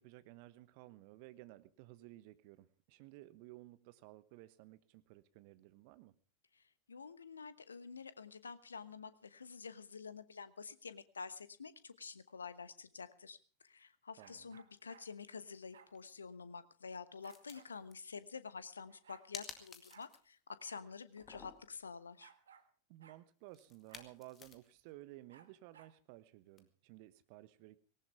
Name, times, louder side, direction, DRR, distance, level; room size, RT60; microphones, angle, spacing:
voice 1, 0.0-6.1 14.2-14.6 22.9-27.8, right 17 dB, 45° right, 14 dB, 1.1 m, -56 dB
voice 2, 6.5-22.3, left 5 dB, 75° left, 15 dB, 1.1 m, -49 dB
sound 1, 14.2-15.1 15.7-15.9 17.2-17.7 18.6-18.7 18.9-19.3 19.9-20.1 20.6-20.9 21.2-21.3 22.2-22.7 23.0-23.2 23.9-24.1 25.3-26.0, right 7 dB, 65° right, 1.7 m, -61 dB
sound 2, 15.3-15.6 15.9-16.2 17.2-17.9 19.3-20.3 20.6-20.7 21.1-21.8 23.5-24.8 26.6-26.7, left 6 dB, 25° left, 2.1 m, -52 dB
18.5 x 18.5 x 3.5 m, 0.38 s
figure-of-eight pair, 90°, 0 cm